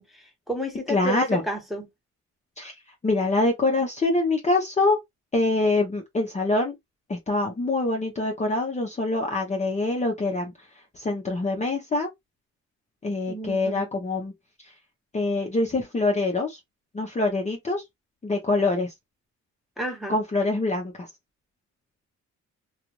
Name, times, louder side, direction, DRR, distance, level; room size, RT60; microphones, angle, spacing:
voice 1, 0.0-1.9 13.3-13.9 19.8-20.2, right 1 dB, ahead, 1.1 m, -31 dB
voice 2, 0.9-1.4 2.6-2.7 3.0-5.0 5.3-6.7 7.1-10.5 11.0-12.1 13.0-14.3 15.1-16.6 16.9-17.8 18.2-18.9 20.1-20.9, left 2 dB, 25° left, 0.7 m, -24 dB
2.4 x 2.4 x 3.0 m
cardioid pair, 90°, 30 cm